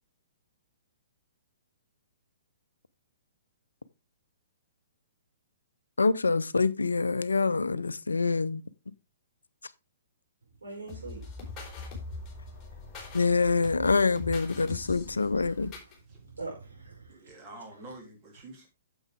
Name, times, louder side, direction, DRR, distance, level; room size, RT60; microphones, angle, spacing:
voice 1, 6.0-8.6 13.1-15.7, left 4 dB, 70° left, 0.6 m, -26 dB
voice 2, 10.6-11.3 12.2-13.4 14.7-17.4, right 3 dB, 70° right, 5.6 m, -46 dB
sound 1, 10.9-16.0, left 3 dB, 15° left, 4.1 m, -42 dB
voice 3, 17.1-18.7, right 2 dB, 25° right, 3.0 m, -47 dB
9.1 x 7.2 x 3.5 m
figure-of-eight pair, 120°, 0 cm